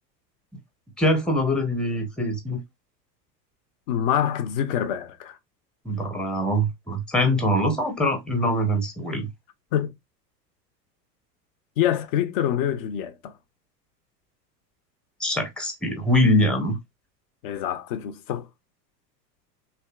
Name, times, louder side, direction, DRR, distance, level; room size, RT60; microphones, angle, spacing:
voice 1, 1.0-2.6 5.8-9.3 15.2-16.8, equal, ahead, 0.7 m, -23 dB
voice 2, 3.9-5.4 9.7-10.0 11.8-13.4 17.4-18.5, left 10 dB, 35° left, 0.4 m, -26 dB
3.2 x 2.6 x 2.2 m
figure-of-eight pair, 90°, 50 cm